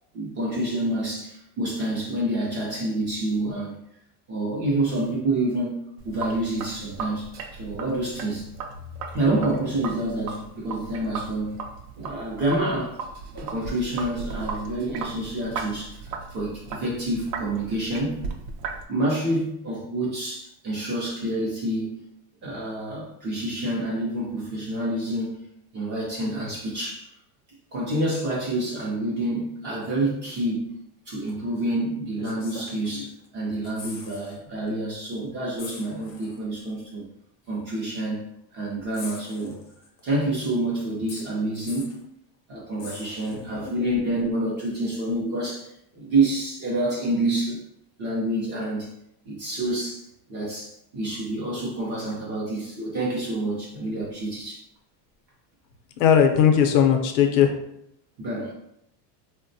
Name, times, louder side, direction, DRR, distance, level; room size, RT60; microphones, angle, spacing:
voice 1, 0.1-3.8 4.3-5.8 6.0-8.5 9.1-11.6 12.0-13.0 13.3-16.0 16.3-18.2 18.9-22.1 22.4-25.4 25.7-27.1 27.7-30.7 31.1-37.0 37.5-39.6 40.0-41.9 42.5-47.6 48.0-48.9 49.3-54.6 58.2-58.5, right 1 dB, 25° right, -5 dB, 0.4 m, -28 dB
Sink (filling or washing), 6.0-18.8, right 4 dB, 70° right, 0.6 m, -37 dB
sound 1, 31.3-31.4 32.2-33.3 33.5-34.4 34.7-34.8 35.6-36.4 37.5-37.6 38.9-40.0 41.1-42.0 42.8-43.7 45.5-45.6, left 4 dB, 35° left, 0.5 m, -43 dB
voice 2, 56.0-57.5, left 8 dB, 85° left, 4 dB, 0.7 m, -18 dB
3.4 x 2.1 x 2.6 m, 0.76 s
cardioid pair, 170°, 48 cm